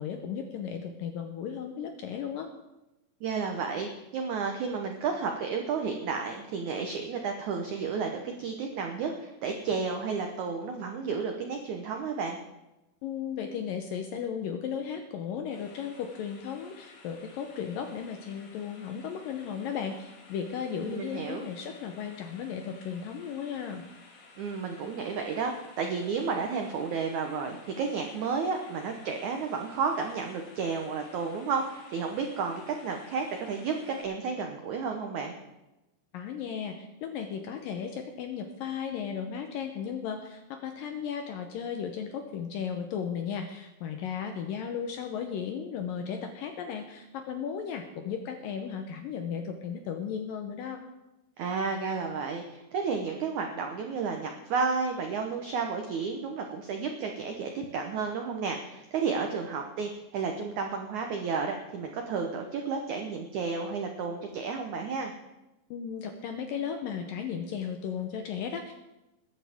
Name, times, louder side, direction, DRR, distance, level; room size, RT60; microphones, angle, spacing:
voice 1, 0.0-2.5 13.0-23.9 36.1-50.8 65.7-68.7, left 7 dB, 75° left, 5 dB, 2.1 m, -35 dB
voice 2, 3.2-12.4 20.8-21.5 24.4-35.4 51.4-65.1, right 5 dB, 80° right, 3 dB, 1.7 m, -32 dB
sound 1, 15.5-34.0, left 3 dB, 60° left, 3.8 m, -54 dB
20.5 x 10.5 x 3.6 m, 0.97 s
omnidirectional pair, 4.8 m